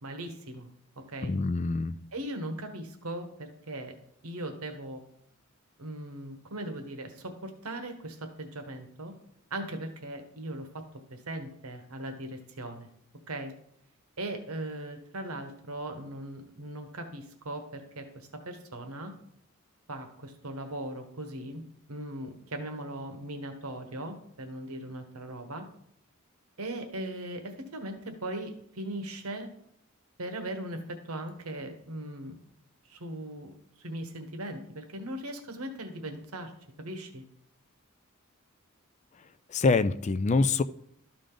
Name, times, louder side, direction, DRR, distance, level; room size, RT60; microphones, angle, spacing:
voice 1, 0.0-0.7 1.1-1.4 2.1-4.0 4.2-5.0 5.8-9.1 9.5-10.8 11.1-12.9 13.3-13.5 14.2-19.1 19.9-21.6 21.9-25.6 26.6-29.5 30.2-32.4 32.9-36.5 36.8-37.2, right 1 dB, 85° right, 6 dB, 1.2 m, -39 dB
voice 2, 1.2-1.9 39.5-40.6, left 3 dB, 30° left, 14 dB, 0.3 m, -25 dB
12.5 x 5.1 x 3.8 m, 0.71 s
head